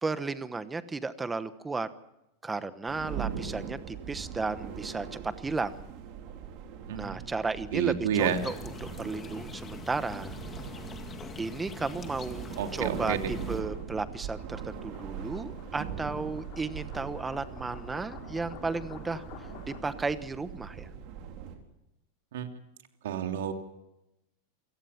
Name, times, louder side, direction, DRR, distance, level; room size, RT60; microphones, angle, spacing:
voice 1, 0.0-1.9 2.4-5.8 6.9-8.5 9.0-10.4 11.4-12.4 12.7-19.2 19.8-20.9, right 3 dB, 10° right, 12 dB, 1.0 m, -34 dB
sound 1, 2.9-21.6, right 7 dB, 45° right, 3.9 m, -41 dB
voice 2, 6.9-7.2 7.7-8.4 12.6-13.3 22.3-22.5 23.0-23.5, right 8 dB, 85° right, 5 dB, 3.2 m, -29 dB
sound 2, 8.1-13.6, left 5 dB, 15° left, 1.8 m, -44 dB
sound 3, 10.6-20.2, left 8 dB, 45° left, 4.1 m, -51 dB
28.0 x 17.5 x 5.8 m, 0.90 s
supercardioid pair, 165°, 0 cm